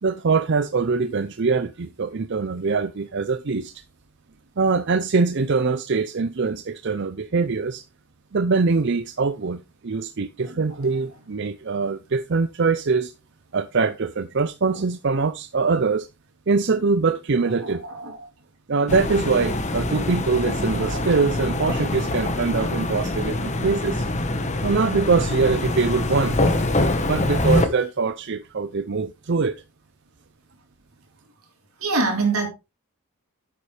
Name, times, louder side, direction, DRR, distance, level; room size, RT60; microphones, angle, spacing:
voice 1, 0.0-3.7 4.6-7.8 8.3-13.1 13.5-16.1 16.5-17.8 18.7-24.1 24.6-26.4 27.1-29.6, right 4 dB, 50° right, 0.6 m, -23 dB
voice 2, 10.4-10.8 14.7-14.8 17.4-18.3 20.7-21.3 31.8-32.5, right 3 dB, 80° right, 3.9 m, -27 dB
sound 1, 18.9-27.7, left 1 dB, 30° left, 1.3 m, -24 dB
10.5 x 8.5 x 3.3 m
head